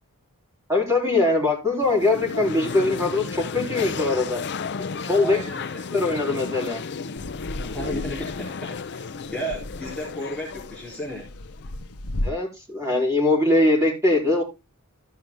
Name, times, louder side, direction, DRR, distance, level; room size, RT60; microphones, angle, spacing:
voice 1, 0.7-4.4 5.0-5.4 5.9-6.8 12.2-14.4, left 2 dB, 15° right, -2 dB, 4.4 m, -22 dB
sound 1, 1.8-11.8, left 5 dB, 50° left, 0.6 m, -33 dB
voice 2, 5.2-5.8 7.6-11.3, equal, 5° left, -6 dB, 3.5 m, -34 dB
sound 2, 7.1-8.9 9.2-12.3, left 1 dB, 85° left, 0.9 m, -34 dB
13.5 x 5.6 x 3.7 m, 0.25 s
head